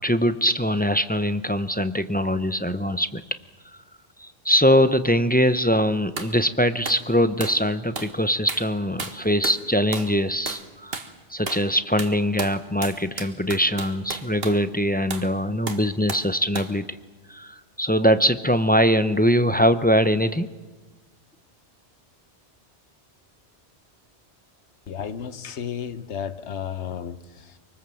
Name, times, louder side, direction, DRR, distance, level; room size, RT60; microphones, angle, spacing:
voice 1, 0.0-3.2 4.2-11.0 11.3-16.9 17.3-20.5, equal, 10° left, 10 dB, 0.5 m, -22 dB
sound 1, 6.2-6.4 6.8-7.0 7.4-7.6 8.0-8.2 8.5-8.7 9.0-9.6 9.9-10.2 10.5-10.7 10.9-11.1 11.5-11.7 12.0-14.6 15.1-15.3 15.7-16.3 16.6-16.8, right 3 dB, 60° right, 1.8 m, -33 dB
voice 2, 24.9-27.6, left 8 dB, 85° left, 12 dB, 1.3 m, -33 dB
24.5 x 23.5 x 7.7 m, 1.3 s
omnidirectional pair, 1.1 m